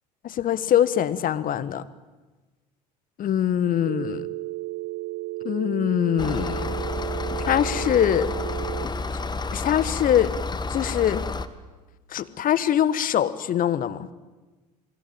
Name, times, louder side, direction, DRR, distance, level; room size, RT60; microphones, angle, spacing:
voice 1, 0.2-1.8 3.2-4.3 5.4-6.7 7.5-8.3 9.5-10.3 10.7-11.2 12.1-14.1, left 10 dB, 40° left, 15 dB, 1.5 m, -23 dB
Telephone, 3.9-8.9, right 20 dB, 50° right, 1.4 m, -33 dB
sound 1, 6.2-11.5, left 3 dB, 20° left, 1.6 m, -30 dB
27.5 x 20.5 x 9.0 m, 1.2 s
figure-of-eight pair, 70°, 21 cm